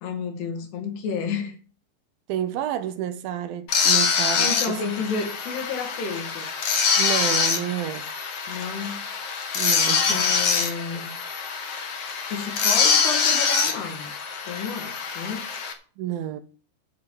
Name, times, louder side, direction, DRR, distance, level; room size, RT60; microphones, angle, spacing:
voice 1, 0.0-1.6 4.3-6.5 8.5-9.0 10.1-11.1 12.3-14.1 14.4-15.5, left 5 dB, 85° left, 4.1 m, -31 dB
voice 2, 2.3-4.8 7.0-8.1 9.6-10.2 16.0-16.4, right 11 dB, 75° right, 2.3 m, -30 dB
sound 1, 3.7-15.7, left 6 dB, 55° left, 1.7 m, -24 dB
9.0 x 7.6 x 7.4 m
omnidirectional pair, 4.6 m